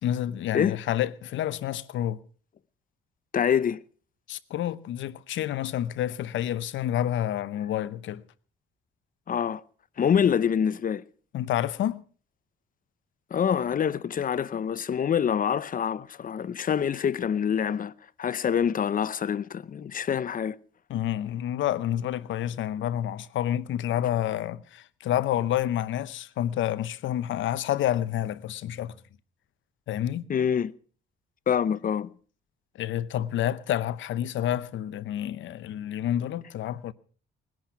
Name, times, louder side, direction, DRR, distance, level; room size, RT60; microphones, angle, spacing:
voice 1, 0.0-2.2 4.3-8.2 11.3-12.0 20.9-28.9 29.9-30.3 32.7-36.9, left 11 dB, 75° left, 0.8 m, -29 dB
voice 2, 3.3-3.8 9.3-9.6 10.0-11.0 13.3-17.9 18.2-20.6 30.3-30.7 31.5-32.1, left 8 dB, 45° left, 0.7 m, -26 dB
19.5 x 10.5 x 5.9 m
cardioid pair, 90°, 20 cm